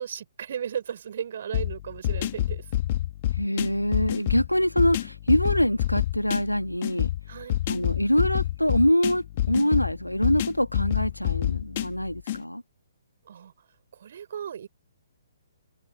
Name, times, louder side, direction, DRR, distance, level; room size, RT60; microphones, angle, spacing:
voice 1, 0.0-2.7 7.3-7.6 13.3-13.5 13.9-14.7, right 8 dB, 50° right, 6.5 m, -35 dB
sound 1, 1.5-12.4, left 13 dB, 35° left, 2.5 m, -28 dB
voice 2, 3.3-7.1 7.7-12.6, equal, 90° left, 2.4 m, -24 dB
figure-of-eight pair, 130°, 0 cm